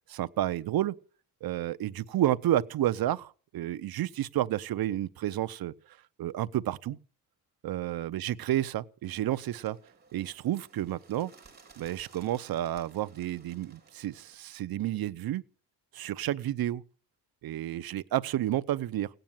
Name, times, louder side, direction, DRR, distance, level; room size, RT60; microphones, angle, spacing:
voice 1, 0.1-0.9 1.4-5.7 6.2-7.0 7.6-9.8 10.1-11.3 11.8-15.4 15.9-16.8 17.4-19.1, right 13 dB, 60° right, 0.8 m, -30 dB
Bird, 9.0-14.3, right 4 dB, 25° right, 3.4 m, -58 dB
17.5 x 9.1 x 9.0 m
cardioid pair, 165°, 40 cm